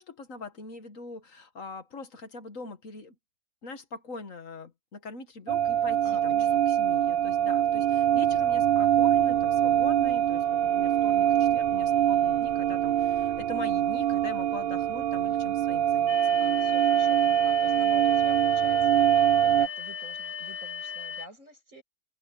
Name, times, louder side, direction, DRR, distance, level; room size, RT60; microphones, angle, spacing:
voice 1, 0.0-3.2 3.6-6.4 6.7-16.2, left 3 dB, 60° left, 1.9 m, -42 dB
sound 1, 5.5-19.7, right 10 dB, 80° right, 0.5 m, -24 dB
voice 2, 6.0-6.6 7.0-7.3 16.4-21.8, right 2 dB, 55° right, 7.9 m, -48 dB
sound 2, 16.1-21.3, left 7 dB, 40° left, 1.8 m, -37 dB
omnidirectional pair, 1.6 m